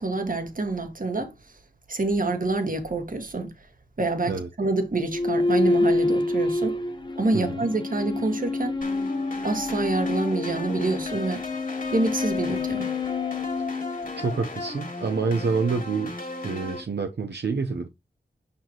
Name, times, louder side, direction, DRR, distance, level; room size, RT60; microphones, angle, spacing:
voice 1, 0.0-1.3 1.9-3.5 4.0-6.8 7.2-8.8 9.4-11.4 11.9-12.9, right 2 dB, 50° right, 1.7 m, -27 dB
sound 1, 5.1-14.7, left 2 dB, 25° left, 1.0 m, -27 dB
voice 2, 7.3-7.6 14.2-16.2 16.4-17.9, right 4 dB, 75° right, 0.8 m, -27 dB
sound 2, 8.8-16.8, left 3 dB, 50° left, 2.2 m, -36 dB
7.0 x 6.1 x 2.9 m
wide cardioid pair, 60°, 18 cm